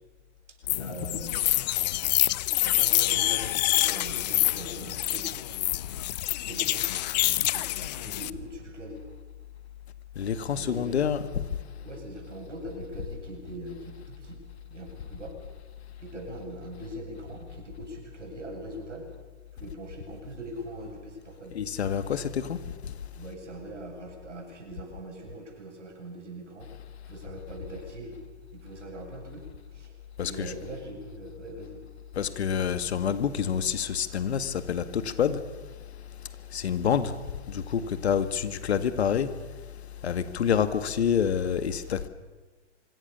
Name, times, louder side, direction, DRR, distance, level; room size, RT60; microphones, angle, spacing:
sound 1, 0.7-8.3, left 16 dB, 35° left, 0.7 m, -26 dB
voice 1, 0.8-2.1 2.6-5.4 6.3-6.9 7.4-9.0 10.5-11.1 11.8-15.4 16.0-19.1 19.5-21.6 23.2-26.7 27.0-28.2 28.5-31.8, right 1 dB, 80° right, 8.0 m, -42 dB
voice 2, 10.2-11.2 21.6-22.6 30.2-30.5 32.2-35.4 36.5-37.1 37.5-39.3 40.0-42.1, left 8 dB, 65° left, 1.9 m, -27 dB
25.0 x 23.0 x 6.9 m
hypercardioid pair, 130°, 35 cm